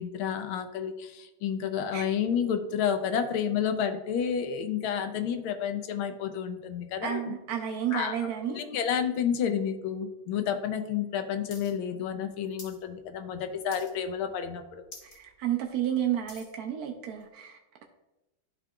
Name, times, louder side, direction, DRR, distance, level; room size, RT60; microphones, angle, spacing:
voice 1, 0.0-7.3 7.9-8.2 8.5-14.8, left 8 dB, 80° left, 7 dB, 1.5 m, -30 dB
voice 2, 7.0-8.6 15.0-17.8, right 10 dB, 75° right, 3 dB, 0.8 m, -31 dB
sound 1, 11.5-11.7 12.0-12.8 13.2-13.4 13.7-14.2 14.5-14.6 14.8-15.2 15.6-16.5 17.2-17.3, left 3 dB, 40° left, 1.7 m, -47 dB
12.0 x 4.7 x 2.4 m, 1.0 s
omnidirectional pair, 2.3 m